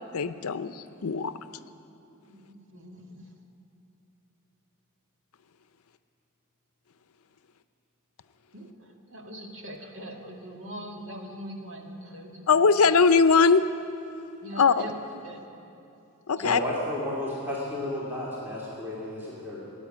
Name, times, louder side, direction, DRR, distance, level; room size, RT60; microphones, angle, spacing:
voice 1, 0.1-1.3 12.5-13.6 14.5-14.9 16.3-16.6, left 5 dB, 75° left, 12 dB, 0.6 m, -21 dB
voice 2, 2.3-3.2 8.5-12.5 14.4-14.9 15.2-15.4 16.4-16.5, equal, 60° right, 1 dB, 1.8 m, -42 dB
voice 3, 16.4-19.7, left 1 dB, 10° right, -7 dB, 2.5 m, -32 dB
15.5 x 8.7 x 9.9 m, 2.8 s
head